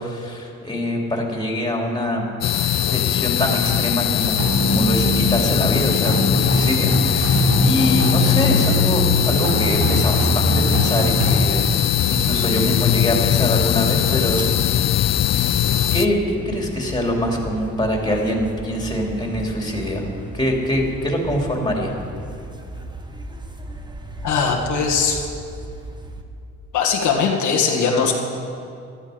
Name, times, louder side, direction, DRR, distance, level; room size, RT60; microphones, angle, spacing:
voice 1, 0.0-2.2 2.9-11.6 12.1-15.1 15.9-20.1 20.3-22.0, equal, 15° left, 0 dB, 2.9 m, -24 dB
sound 1, 2.4-16.1, left 11 dB, 60° left, 0.5 m, -20 dB
sound 2, 4.4-11.4, left 1 dB, 75° right, 3.3 m, -21 dB
sound 3, 11.3-26.2, right 1 dB, 15° right, 1.2 m, -36 dB
voice 2, 24.2-25.2 26.7-28.1, left 5 dB, 80° left, 1 dB, 1.6 m, -20 dB
15.0 x 13.0 x 5.1 m, 2.5 s
cardioid pair, 90°, 30 cm